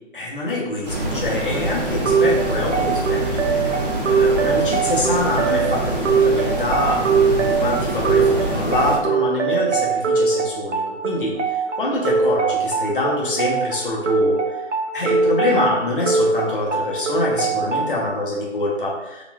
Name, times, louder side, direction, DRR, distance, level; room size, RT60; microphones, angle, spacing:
voice 1, 0.1-3.7 4.0-14.6 14.9-19.2, left 2 dB, 45° left, -3 dB, 0.6 m, -25 dB
sound 1, 0.8-9.0, right 1 dB, 35° right, 0.6 m, -25 dB
sound 2, 2.1-18.0, right 5 dB, 80° right, 0.5 m, -22 dB
3.1 x 2.4 x 2.2 m, 0.98 s
figure-of-eight pair, 175°, 36 cm